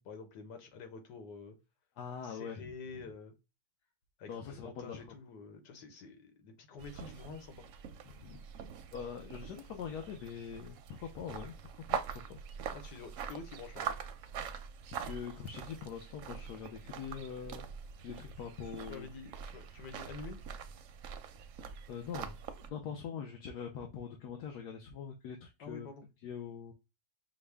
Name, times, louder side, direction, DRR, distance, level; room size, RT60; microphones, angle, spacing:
voice 1, 0.0-1.6 2.2-3.3 4.2-7.7 12.7-14.0 18.9-20.4 25.6-26.1, left 4 dB, 90° left, 1.6 m, -48 dB
voice 2, 2.0-2.7 4.3-5.1 8.2-8.4 8.9-12.1 15.0-17.7 18.0-19.1 21.9-25.9 26.2-26.7, left 7 dB, 75° left, 1.3 m, -43 dB
sound 1, 6.8-22.7, right 7 dB, 65° right, 0.8 m, -44 dB
6.1 x 2.2 x 3.4 m
omnidirectional pair, 1.8 m